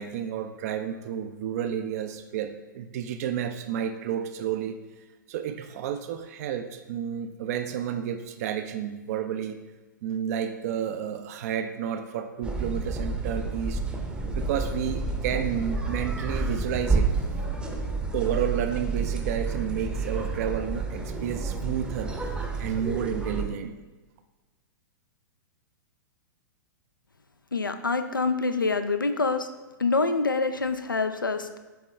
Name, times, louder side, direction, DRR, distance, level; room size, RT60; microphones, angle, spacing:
voice 1, 0.0-4.8 5.3-9.6 10.0-13.8 14.3-17.1 18.1-23.8, right 9 dB, 50° right, 8 dB, 0.4 m, -31 dB
sound 1, 12.4-23.5, right 3 dB, 10° right, 0.7 m, -30 dB
voice 2, 27.5-29.5 29.8-31.6, left 3 dB, 90° left, 9 dB, 0.5 m, -26 dB
7.8 x 3.7 x 3.2 m, 1.2 s
figure-of-eight pair, 105°, 11 cm